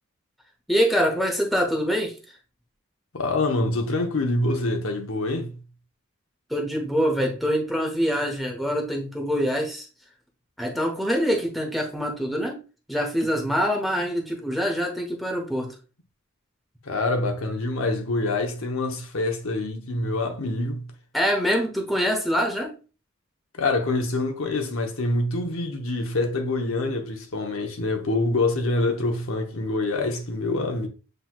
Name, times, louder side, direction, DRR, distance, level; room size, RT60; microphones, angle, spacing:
voice 1, 0.7-2.1 6.5-9.8 10.6-12.6 12.9-15.7 21.1-22.7, equal, ahead, 0.9 m, -24 dB
voice 2, 3.1-5.5 16.8-20.9 23.6-30.9, left 2 dB, 75° left, 0.9 m, -26 dB
7.7 x 3.0 x 2.2 m
head